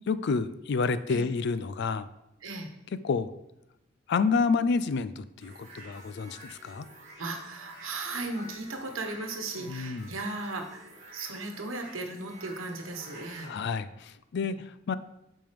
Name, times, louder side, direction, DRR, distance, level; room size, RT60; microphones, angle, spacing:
voice 1, 0.0-2.1 3.0-3.3 4.1-6.9 9.7-10.1 13.5-14.9, left 4 dB, 60° left, 14 dB, 0.4 m, -29 dB
sound 1, 5.4-13.5, right 1 dB, 35° right, 1.8 m, -49 dB
voice 2, 7.2-13.5 14.4-14.6, right 2 dB, 85° right, 4 dB, 1.1 m, -36 dB
8.7 x 5.3 x 3.4 m, 0.90 s
head